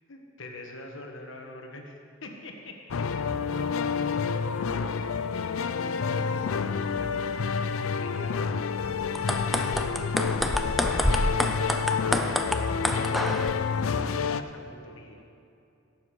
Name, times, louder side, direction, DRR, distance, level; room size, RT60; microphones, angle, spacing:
voice 1, 0.1-8.4 8.9-10.3 10.7-15.2, left 1 dB, 65° left, 2 dB, 1.3 m, -44 dB
sound 1, 2.9-14.4, left 6 dB, 85° left, 0.5 m, -29 dB
sound 2, 9.2-13.5, equal, ahead, 0.4 m, -28 dB
17.0 x 7.4 x 4.8 m, 2.6 s
head